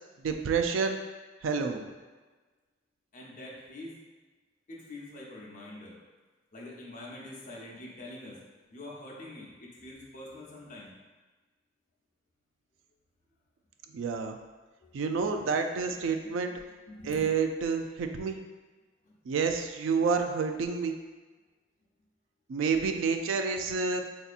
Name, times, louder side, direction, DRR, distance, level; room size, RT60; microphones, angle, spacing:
voice 1, 0.2-1.0 1.4-1.8 13.9-14.4 14.9-16.5 17.1-18.4 19.3-20.9 22.5-24.0, right 5 dB, 80° right, 6 dB, 0.3 m, -29 dB
voice 2, 3.1-4.0 4.7-6.0 6.5-8.4 8.7-10.9 14.8-15.0 15.3-15.4 16.0-16.3 16.9-17.4 19.0-19.1, left 1 dB, 40° left, -4 dB, 0.7 m, -45 dB
4.3 x 2.7 x 2.4 m, 1.3 s
head